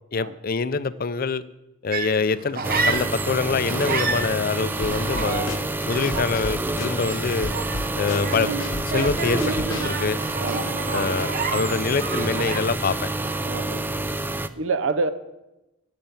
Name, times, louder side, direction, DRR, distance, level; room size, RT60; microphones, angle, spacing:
voice 1, 0.1-1.4 1.8-5.6 5.9-7.5 7.9-8.6 8.8-10.2 10.9-13.1, left 4 dB, 45° left, 15 dB, 0.5 m, -25 dB
sound 1, 1.9-3.4 3.7-12.9 13.2-13.6, right 4 dB, 45° right, 0.9 m, -30 dB
sound 2, 2.6-14.5, right 2 dB, 10° right, 0.4 m, -28 dB
Drum kit / Snare drum, 4.8-10.0, left 2 dB, 70° left, 1.0 m, -34 dB
voice 2, 10.4-10.7 13.4-13.9 14.5-15.1, right 4 dB, 70° right, 12 dB, 0.7 m, -27 dB
12.5 x 6.8 x 9.0 m, 0.96 s
head